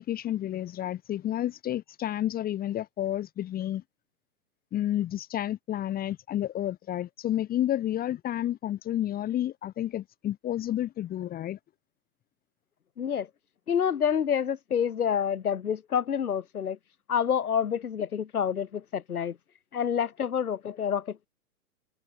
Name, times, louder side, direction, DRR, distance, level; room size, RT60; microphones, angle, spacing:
voice 1, 0.0-3.8 4.7-11.6, left 12 dB, 20° left, 3.5 m, -30 dB
voice 2, 13.0-13.3 13.7-16.8 17.1-19.3 19.7-21.3, left 8 dB, 75° left, 1.3 m, -28 dB
figure-of-eight pair, 125°, 45 cm